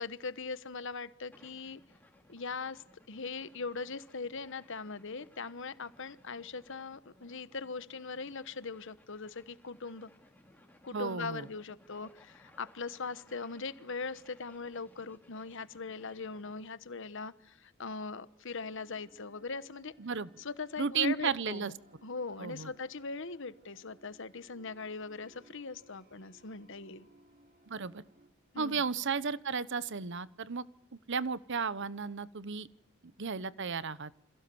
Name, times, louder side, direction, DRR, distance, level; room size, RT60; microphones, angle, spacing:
voice 1, 0.0-1.8 2.3-10.1 10.8-19.9 20.4-21.7 22.0-27.1 28.5-28.8, left 4 dB, 65° left, 14 dB, 1.2 m, -40 dB
sound 1, 1.3-16.7, left 1 dB, 10° left, 4.1 m, -62 dB
voice 2, 10.9-11.5 20.0-20.3 20.8-21.7 22.4-22.7 27.7-28.0 28.6-30.6 31.1-32.7 33.2-34.1, right 5 dB, 60° right, 17 dB, 1.0 m, -34 dB
sound 2, 18.6-28.3, right 1 dB, 45° right, 5.5 m, -63 dB
29.0 x 26.5 x 7.1 m, 0.79 s
head